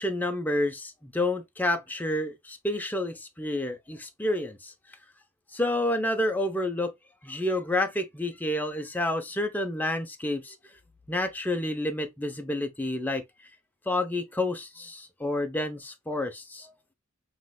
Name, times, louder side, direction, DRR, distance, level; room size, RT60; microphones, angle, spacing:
voice 1, 0.0-4.7 5.5-6.9 7.2-10.6 11.1-13.2 13.9-16.7, left 1 dB, 10° left, 0.8 m, -29 dB
5.9 x 3.2 x 2.2 m
head